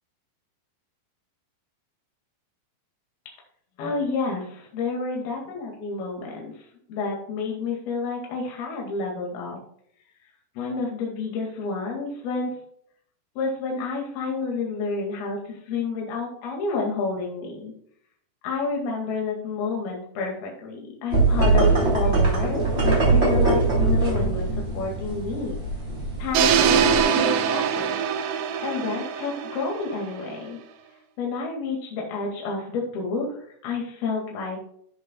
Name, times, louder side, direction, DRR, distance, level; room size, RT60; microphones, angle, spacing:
voice 1, 3.8-9.6 10.6-12.5 13.4-17.7 18.4-22.7 23.1-24.5 24.7-25.6 26.2-28.0 28.6-30.6 31.2-34.6, left 4 dB, 65° left, -1 dB, 3.8 m, -30 dB
sound 1, 21.1-27.0, right 3 dB, 15° right, 3.2 m, -22 dB
sound 2, 26.3-30.4, right 8 dB, 70° right, 2.6 m, -23 dB
13.5 x 7.2 x 2.3 m, 0.64 s
omnidirectional pair, 4.8 m